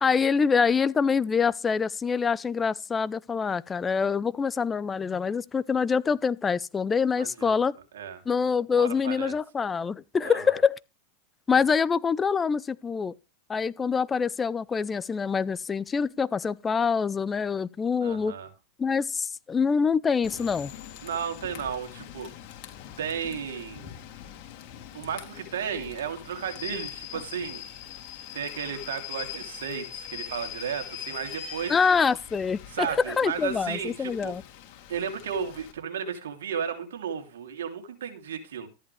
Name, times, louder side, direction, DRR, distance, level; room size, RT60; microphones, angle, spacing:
voice 1, 0.0-7.7 8.3-10.8 11.5-13.1 13.5-18.4 18.8-20.7 31.7-32.9 33.2-34.4, left 5 dB, 20° left, 0.6 m, -25 dB
voice 2, 7.1-7.6 7.9-8.2 8.8-9.3 10.2-10.5 18.0-18.5 21.0-22.3 23.0-23.9 24.9-27.6 28.3-31.8 32.7-34.3 34.9-38.7, right 7 dB, 80° right, 3.0 m, -34 dB
Rain / Train, 20.2-35.7, left 10 dB, 50° left, 3.5 m, -42 dB
14.0 x 10.5 x 3.3 m
hypercardioid pair, 115°, 0 cm